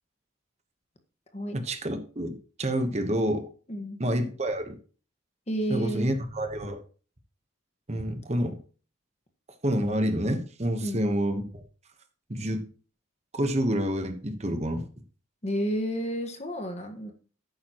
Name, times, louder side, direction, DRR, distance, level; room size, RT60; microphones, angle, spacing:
voice 1, 1.5-3.5 4.0-4.8 5.7-6.8 7.9-8.6 9.6-11.6 12.3-12.7 13.3-14.8, equal, 30° right, 7 dB, 1.2 m, -28 dB
voice 2, 3.7-4.0 5.5-6.1 10.8-11.0 15.4-17.1, equal, 30° left, 5 dB, 1.5 m, -31 dB
12.0 x 9.4 x 3.0 m, 0.39 s
head